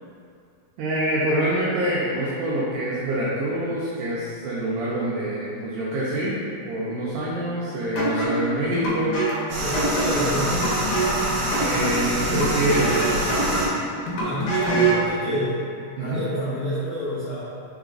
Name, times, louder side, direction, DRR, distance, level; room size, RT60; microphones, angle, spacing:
voice 1, 0.8-6.4 6.7-9.3 11.5-13.4 14.7-14.9 15.2-15.3 16.0-16.2, right 1 dB, 85° right, -7 dB, 1.8 m, -26 dB
sound 1, 8.0-15.1, right 2 dB, 70° left, 1.8 m, -26 dB
sound 2, 9.5-13.7, right 1 dB, 65° right, 2.1 m, -26 dB
voice 2, 9.6-10.9 14.1-15.7 16.0-17.5, equal, 85° left, -15 dB, 1.1 m, -29 dB
4.9 x 4.3 x 2.4 m, 2.4 s
omnidirectional pair, 4.4 m